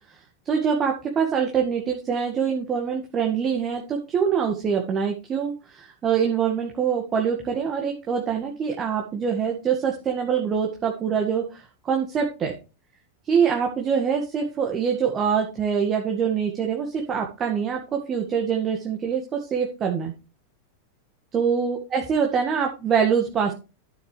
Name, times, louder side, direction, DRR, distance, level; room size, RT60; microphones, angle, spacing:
voice 1, 0.4-12.5 13.2-20.1 21.3-23.5, right 7 dB, 25° right, 1 dB, 1.8 m, -24 dB
13.0 x 7.4 x 3.3 m, 0.30 s
figure-of-eight pair, 90°, 0 cm